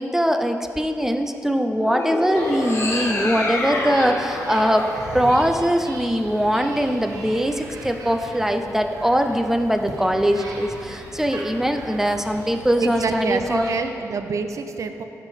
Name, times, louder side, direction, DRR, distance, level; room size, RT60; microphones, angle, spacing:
voice 1, 0.0-4.9 5.1-13.7, equal, 5° right, 6 dB, 0.4 m, -21 dB
sound 1, 1.8-6.2, left 2 dB, 50° left, 1.0 m, -28 dB
sound 2, 2.3-13.8, right 2 dB, 85° right, 0.9 m, -38 dB
voice 2, 12.8-15.0, right 5 dB, 60° right, 8 dB, 0.5 m, -27 dB
12.0 x 4.5 x 3.5 m, 2.7 s
cardioid pair, 90°, 6 cm